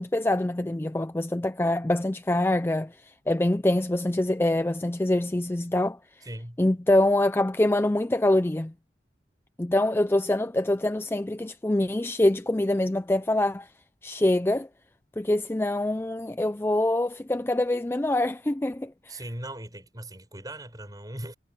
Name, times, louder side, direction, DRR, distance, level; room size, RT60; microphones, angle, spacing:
voice 1, 0.0-6.0 6.6-8.7 9.6-13.7 14.0-14.7 15.2-19.2, left 1 dB, 10° left, 0.4 m, -25 dB
voice 2, 6.2-6.6 19.1-21.3, right 1 dB, 20° right, 7.3 m, -39 dB
head